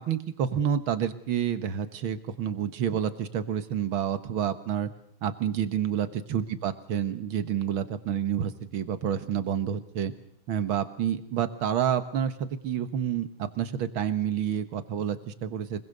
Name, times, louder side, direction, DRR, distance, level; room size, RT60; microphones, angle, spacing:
voice 1, 0.0-4.9 5.2-10.1 10.5-15.8, right 9 dB, 70° right, 10 dB, 2.1 m, -29 dB
25.0 x 21.5 x 6.7 m, 0.70 s
omnidirectional pair, 2.3 m